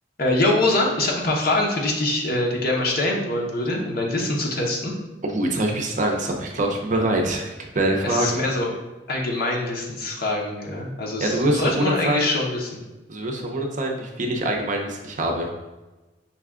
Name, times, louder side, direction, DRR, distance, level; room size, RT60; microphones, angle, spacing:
voice 1, 0.2-4.9 8.0-8.7 9.1-12.8, left 2 dB, 55° left, -1 dB, 0.9 m, -24 dB
voice 2, 5.2-8.4 11.2-12.4 13.1-15.5, right 1 dB, 45° right, 1 dB, 0.6 m, -24 dB
5.7 x 2.3 x 3.6 m, 1.1 s
head